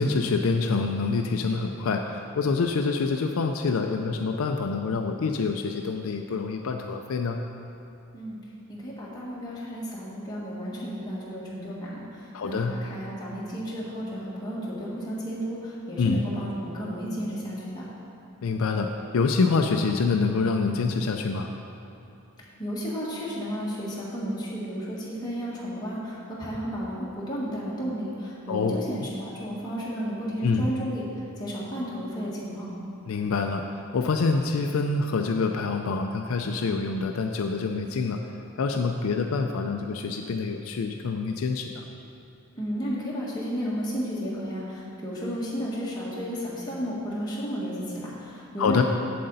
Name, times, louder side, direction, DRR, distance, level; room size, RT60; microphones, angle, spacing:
voice 1, 0.0-7.4 12.3-12.8 16.0-16.2 18.4-21.5 28.5-28.8 30.4-30.7 33.1-38.2 38.6-41.8 48.6-48.8, left 4 dB, 70° left, 4 dB, 0.4 m, -26 dB
voice 2, 8.7-17.8 22.6-31.0 31.4-32.7 42.5-48.8, equal, 20° left, -7 dB, 1.6 m, -33 dB
7.7 x 7.6 x 4.0 m, 2.8 s
head